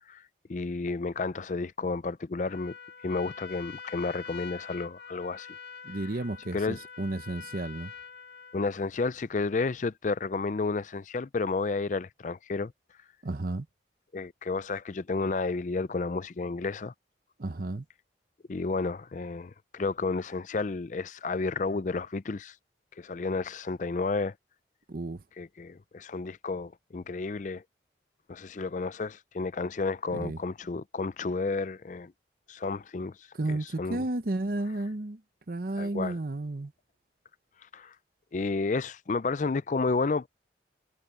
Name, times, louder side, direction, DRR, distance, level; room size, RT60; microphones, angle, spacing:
voice 1, 0.5-2.7 3.0-5.5 6.5-6.8 8.5-12.7 14.1-16.9 18.5-22.5 23.0-24.3 25.4-27.6 28.3-32.1 32.5-33.2 33.5-34.0 35.8-36.2 37.7-37.9 38.3-40.3, left 3 dB, 45° left, 0.4 m, -31 dB
Trumpet, 2.4-8.9, left 6 dB, 60° left, 1.9 m, -45 dB
voice 2, 5.8-7.9 13.2-13.7 17.4-17.8 24.9-25.2 30.1-30.4 33.3-35.2 35.5-36.7, right 2 dB, 50° right, 0.8 m, -32 dB
head